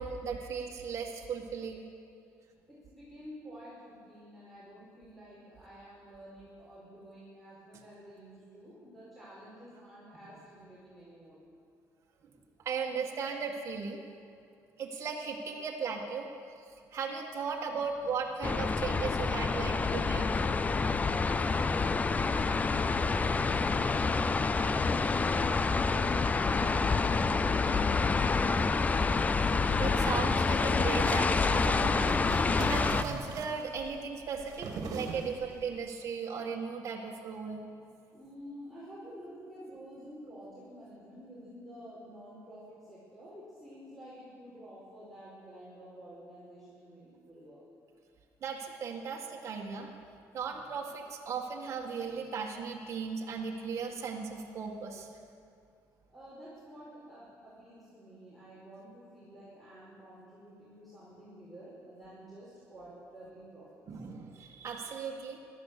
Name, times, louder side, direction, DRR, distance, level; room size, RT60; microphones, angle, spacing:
voice 1, 0.0-1.9 12.7-14.0 14.8-16.3 16.9-20.2 29.8-32.1 32.6-34.7 34.9-37.7 48.4-49.9 50.3-55.1 63.9-65.4, right 5 dB, 45° right, -1 dB, 1.9 m, -36 dB
voice 2, 2.7-11.4 20.8-21.5 22.1-29.1 29.4-29.7 38.1-47.6 56.1-64.0, equal, ahead, -9 dB, 5.0 m, -50 dB
sound 1, 18.4-33.0, left 4 dB, 25° left, 0.5 m, -28 dB
sound 2, 29.7-35.7, right 4 dB, 65° right, 2.0 m, -42 dB
17.0 x 12.5 x 6.8 m, 2.4 s
cardioid pair, 115°, 7 cm